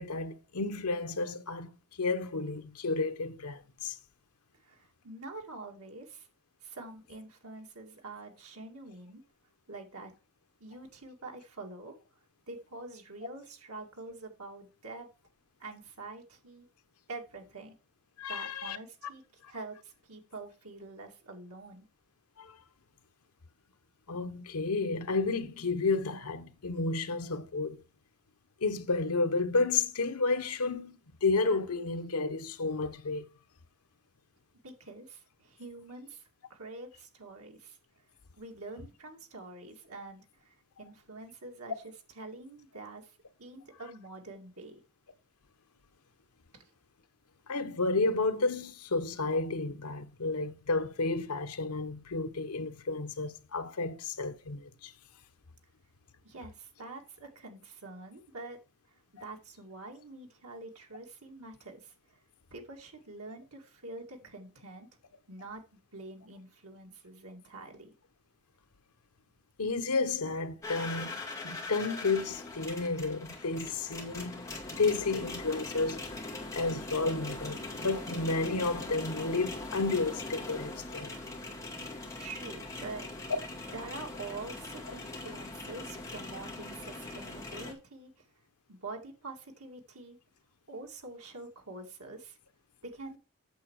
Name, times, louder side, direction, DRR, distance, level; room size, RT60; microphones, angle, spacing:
voice 1, 0.0-4.0 18.2-18.8 22.4-22.6 24.1-27.8 28.6-33.3 47.5-54.9 69.6-81.2, left 3 dB, 90° left, 1.0 m, -32 dB
voice 2, 4.6-6.3 6.6-9.2 9.7-10.1 10.6-11.9 12.5-15.1 15.6-16.7 17.1-17.7 18.3-21.9 34.6-37.8 38.4-41.8 42.2-43.1 43.4-44.8 56.2-58.6 59.1-61.9 62.5-64.9 65.3-67.9 82.2-83.0 83.7-88.2 88.7-90.2 90.7-92.4 92.8-93.2, right 3 dB, 85° right, 2.3 m, -46 dB
sound 1, 70.6-87.7, left 2 dB, 15° left, 2.2 m, -41 dB
8.4 x 6.9 x 4.8 m
head